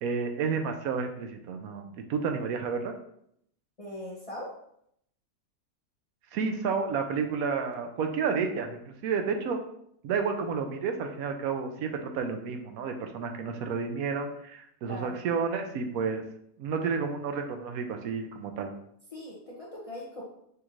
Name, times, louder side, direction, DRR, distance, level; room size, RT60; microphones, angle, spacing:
voice 1, 0.0-2.9 6.3-9.6 10.0-16.2 16.6-18.7, right 5 dB, 80° right, 5 dB, 1.0 m, -31 dB
voice 2, 3.8-4.5 14.8-15.2 19.1-20.2, left 1 dB, 35° left, -4 dB, 0.6 m, -40 dB
6.2 x 2.5 x 3.0 m, 0.71 s
omnidirectional pair, 1.5 m